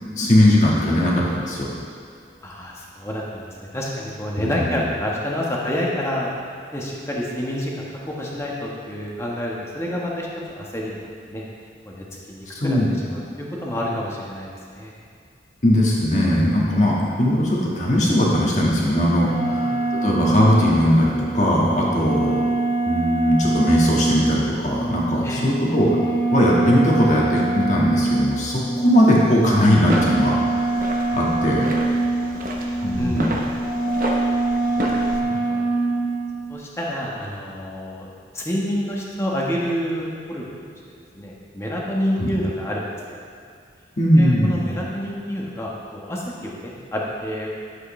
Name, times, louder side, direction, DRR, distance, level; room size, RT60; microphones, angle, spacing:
voice 1, 0.1-1.7 4.4-4.8 12.5-12.9 15.6-19.7 20.0-22.4 22.8-26.0 26.3-31.7 32.8-33.4 42.2-42.3 44.0-44.6, equal, 40° left, -4 dB, 1.6 m, -19 dB
voice 2, 2.4-6.3 6.7-10.3 10.6-11.4 11.9-12.8 13.0-14.9 19.4-19.7 25.2-25.5 33.0-33.5 34.8-35.6 36.5-38.1 38.3-40.6 40.9-43.2 44.2-47.5, equal, 15° left, -4 dB, 1.2 m, -28 dB
sound 1, 19.3-36.5, right 2 dB, 85° left, 2.5 m, -24 dB
sound 2, 29.7-35.2, equal, 50° right, 1.0 m, -30 dB
11.5 x 7.8 x 3.2 m, 2.3 s
head